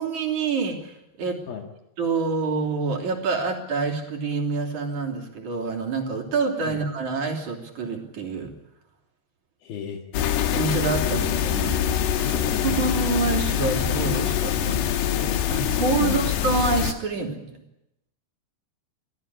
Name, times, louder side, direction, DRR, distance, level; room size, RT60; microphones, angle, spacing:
voice 1, 0.0-1.4 2.0-8.5 10.5-11.8 12.1-17.6, right 4 dB, 50° right, 2 dB, 4.3 m, -27 dB
voice 2, 9.6-10.0 12.3-12.8 16.0-16.2, left 8 dB, 65° left, 3 dB, 3.4 m, -34 dB
sound 1, 10.1-16.9, left 10 dB, 80° left, 3.4 m, -24 dB
24.5 x 16.0 x 9.9 m, 0.87 s
omnidirectional pair, 4.7 m